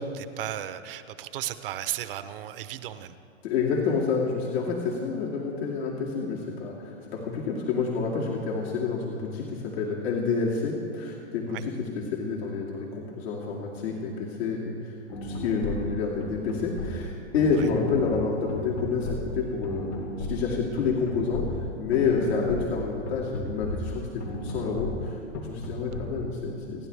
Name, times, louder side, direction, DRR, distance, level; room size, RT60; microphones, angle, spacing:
voice 1, 0.0-3.2 11.5-11.6 17.6-17.7, right 12 dB, 50° right, 12 dB, 0.9 m, -35 dB
voice 2, 3.4-14.9 15.2-26.9, left 5 dB, 60° left, -3 dB, 2.4 m, -29 dB
Atmospheric game music, 15.1-26.1, left 1 dB, 85° left, 3.0 m, -34 dB
29.0 x 10.5 x 3.4 m, 2.6 s
hypercardioid pair, 145°, 35 cm